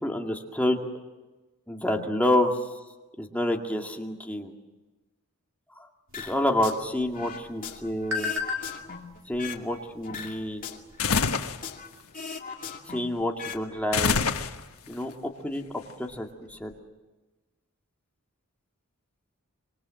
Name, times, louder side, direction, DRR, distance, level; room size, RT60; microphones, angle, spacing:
voice 1, 0.0-0.8 1.7-2.5 3.2-4.5 5.8-5.9 6.2-8.3 9.3-10.7 12.9-14.2 14.9-15.1 15.4-15.7 16.0-16.7, left 1 dB, 5° left, 1 dB, 2.2 m, -28 dB
sound 1, 6.1-6.8 7.1-9.7 10.0-11.9 12.1-13.6 13.9-14.1, left 5 dB, 40° left, 2.4 m, -39 dB
sound 2, 6.1-11.2, left 5 dB, 60° right, 3.4 m, -38 dB
sound 3, 11.0-11.6 13.9-14.9, left 5 dB, 85° left, 1.4 m, -25 dB
26.0 x 25.0 x 7.6 m, 1.2 s
head